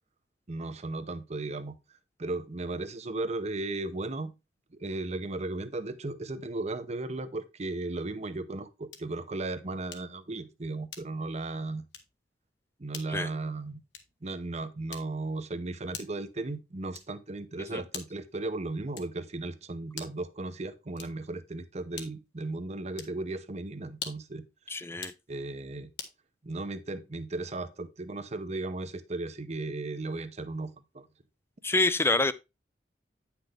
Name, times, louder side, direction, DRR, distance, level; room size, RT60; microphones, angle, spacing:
voice 1, 0.5-1.8 2.2-4.3 4.7-11.9 12.8-13.8 14.2-24.4 25.3-25.9 26.4-31.1, right 2 dB, 40° right, 0.8 m, -36 dB
sound 1, 8.9-9.2 9.9-10.2 10.9-11.3 11.9-12.2 12.9-13.2 13.9-14.2 14.9-15.3 15.9-16.3 16.9-17.3 17.9-18.3 18.9-19.3 19.9-20.3 20.9-21.3 21.9-22.3 22.9-23.2 23.9-24.4 24.9-25.2 26.0-26.2, left 7 dB, 80° left, 1.4 m, -44 dB
voice 2, 24.7-25.1 31.6-32.3, left 2 dB, 15° left, 0.5 m, -26 dB
9.2 x 6.0 x 3.4 m
head